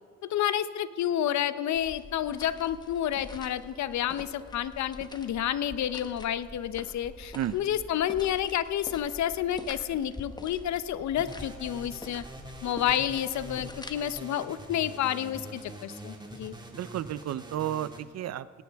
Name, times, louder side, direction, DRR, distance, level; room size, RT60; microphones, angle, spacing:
voice 1, 0.2-12.2 12.6-16.6, left 11 dB, 65° left, 14 dB, 0.7 m, -30 dB
sound 1, 1.7-14.2, left 2 dB, 15° left, 1.1 m, -46 dB
sound 2, 11.2-18.0, right 1 dB, 15° right, 2.1 m, -45 dB
voice 2, 16.7-18.6, right 11 dB, 60° right, 16 dB, 0.6 m, -32 dB
19.5 x 17.5 x 3.5 m, 2.1 s
cardioid pair, 90°, 30 cm